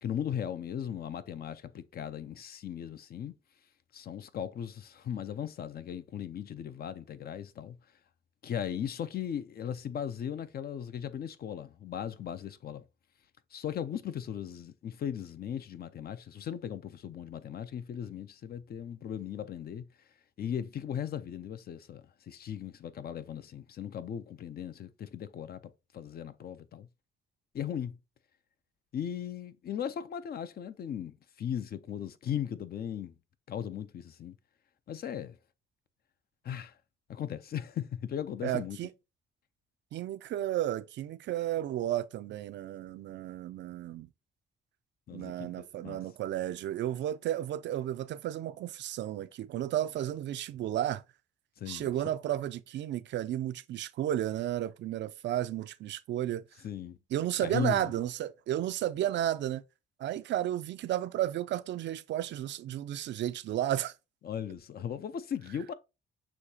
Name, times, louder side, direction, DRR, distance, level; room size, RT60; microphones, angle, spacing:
voice 1, 0.0-3.3 3.9-7.8 8.4-12.8 13.5-19.8 20.4-26.9 27.5-28.0 28.9-33.1 33.5-34.3 34.9-35.4 36.4-36.7 37.1-38.8 45.1-46.0 51.6-51.9 56.6-57.0 57.4-57.9 64.2-65.7, left 9 dB, 50° left, 0.5 m, -37 dB
voice 2, 38.4-38.9 39.9-44.1 45.1-51.0 51.7-56.4 57.1-59.6 60.0-63.9, right 12 dB, 65° right, 0.4 m, -33 dB
6.4 x 2.9 x 2.7 m
cardioid pair, 90°, 20 cm